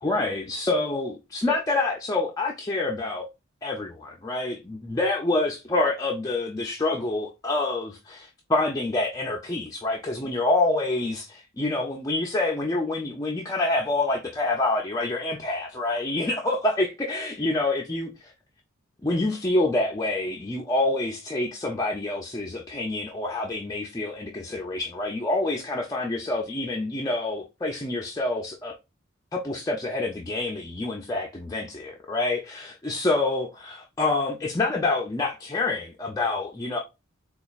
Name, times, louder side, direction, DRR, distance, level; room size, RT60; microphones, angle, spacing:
voice 1, 0.0-3.3 3.6-18.3 19.0-28.8 29.3-36.8, left 2 dB, 15° left, 0.4 m, -27 dB
4.1 x 2.3 x 2.4 m
head